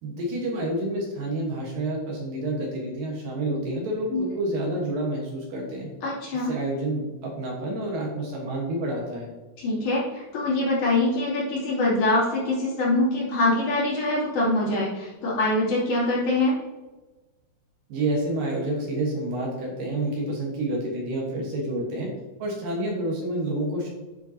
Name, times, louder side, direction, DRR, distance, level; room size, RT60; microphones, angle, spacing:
voice 1, 0.0-5.9 6.3-9.3 17.9-22.1 22.4-23.9, right 1 dB, 65° right, -1 dB, 2.2 m, -29 dB
voice 2, 6.0-6.5 9.6-16.6, left 2 dB, 45° left, -6 dB, 3.6 m, -24 dB
10.5 x 6.8 x 2.8 m, 1.2 s
omnidirectional pair, 5.8 m